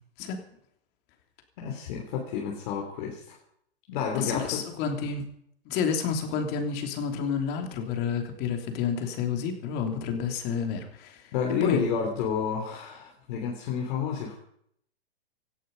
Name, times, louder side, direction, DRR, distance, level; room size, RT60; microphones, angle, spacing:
voice 1, 1.6-3.4 3.9-4.6 11.3-14.3, left 7 dB, 50° left, -1 dB, 3.4 m, -30 dB
voice 2, 4.1-5.2 5.6-11.2 11.6-11.8, left 6 dB, 35° left, 4 dB, 3.0 m, -29 dB
17.5 x 14.0 x 5.4 m, 0.70 s
hypercardioid pair, 140°, 31 cm